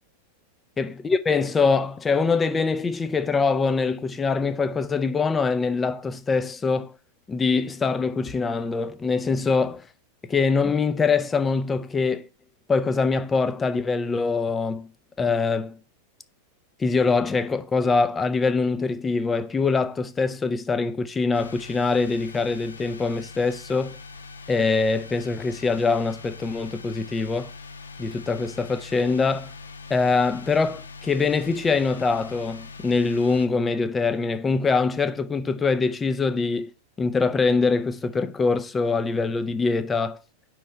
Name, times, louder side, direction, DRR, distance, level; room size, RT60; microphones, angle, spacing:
voice 1, 0.8-6.9 7.3-9.8 10.3-12.3 12.7-14.9 15.2-15.8 16.8-24.0 24.5-27.5 28.0-29.5 29.9-36.7 37.0-40.2, left 4 dB, 15° left, 0.4 m, -23 dB
sound 1, 21.3-33.5, left 4 dB, 70° left, 0.4 m, -42 dB
5.4 x 3.2 x 5.5 m
figure-of-eight pair, 90°, 0 cm